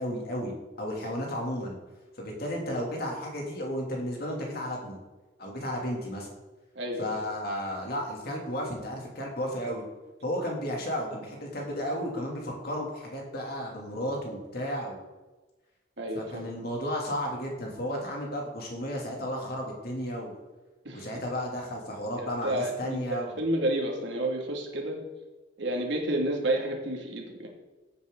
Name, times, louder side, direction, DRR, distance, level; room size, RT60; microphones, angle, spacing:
voice 1, 0.0-1.8 2.2-5.0 5.4-6.3 7.0-9.8 10.2-15.0 16.1-20.3 20.9-23.4, equal, 55° left, -1 dB, 3.0 m, -33 dB
voice 2, 6.7-7.2 16.0-16.5 20.8-21.1 22.2-25.0 25.6-27.5, right 1 dB, 65° right, 1 dB, 2.6 m, -30 dB
15.0 x 9.3 x 4.0 m, 1.2 s
head